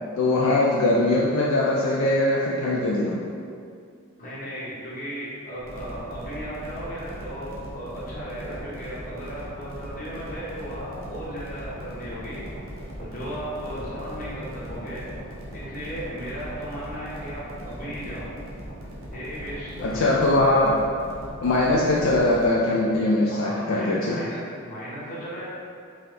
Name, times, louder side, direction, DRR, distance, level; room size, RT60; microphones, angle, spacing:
voice 1, 0.2-3.3 19.8-20.8 21.4-24.2, left 2 dB, 75° left, -4 dB, 0.4 m, -21 dB
voice 2, 4.2-12.5 13.0-15.1 15.5-18.3 19.1-20.1 23.3-25.5, equal, 40° left, -9 dB, 1.1 m, -35 dB
sound 1, 5.6-22.5, equal, 70° right, 0.8 m, -39 dB
3.8 x 2.8 x 3.3 m, 2.3 s
head